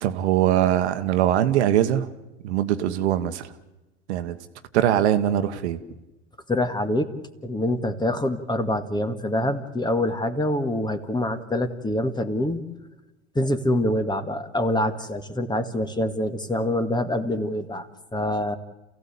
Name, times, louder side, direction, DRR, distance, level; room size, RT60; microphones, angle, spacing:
voice 1, 0.0-2.1 2.4-3.5 4.1-4.4 4.7-5.8, right 11 dB, 75° right, 9 dB, 1.4 m, -22 dB
voice 2, 6.5-7.1 7.4-12.6 13.4-18.6, left 1 dB, 10° left, 8 dB, 1.9 m, -25 dB
28.0 x 15.5 x 8.6 m, 1.0 s
hypercardioid pair, 90°, 34 cm